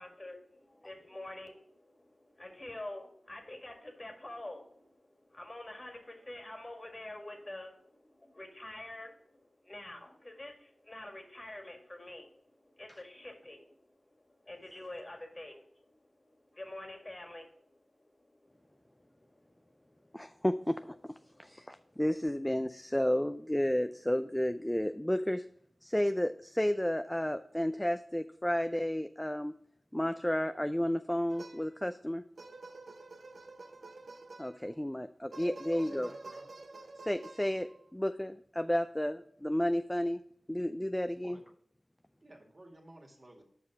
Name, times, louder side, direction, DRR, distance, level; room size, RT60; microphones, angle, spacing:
voice 1, 0.0-20.4 21.3-22.0, left 1 dB, 35° left, 4 dB, 1.9 m, -48 dB
voice 2, 20.1-21.1 21.4-25.4 25.8-29.6 29.9-32.2 34.4-36.1 37.1-40.2 40.5-41.4, equal, 10° left, 10 dB, 0.4 m, -32 dB
sound 1, 31.3-31.9 32.4-34.8 35.3-37.9, right 3 dB, 70° right, 0.7 m, -49 dB
voice 3, 35.7-36.5 41.2-41.5 42.2-43.4, right 1 dB, 40° right, 1 dB, 2.0 m, -54 dB
6.7 x 5.3 x 5.9 m, 0.66 s
cardioid pair, 45°, 0 cm